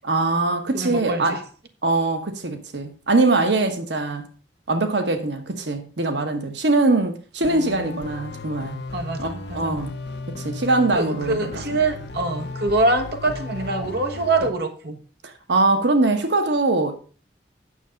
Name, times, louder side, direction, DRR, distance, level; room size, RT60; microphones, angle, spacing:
voice 1, 0.0-1.4 1.8-4.3 4.7-8.8 9.2-10.0 10.3-11.5 15.2-17.0, right 2 dB, 90° right, 1.3 m, -22 dB
voice 2, 0.7-1.4 8.9-9.8 10.9-15.0, right 2 dB, 65° right, 1.3 m, -24 dB
sound 1, 7.4-14.5, left 3 dB, 70° left, 0.9 m, -35 dB
9.3 x 6.9 x 5.1 m
head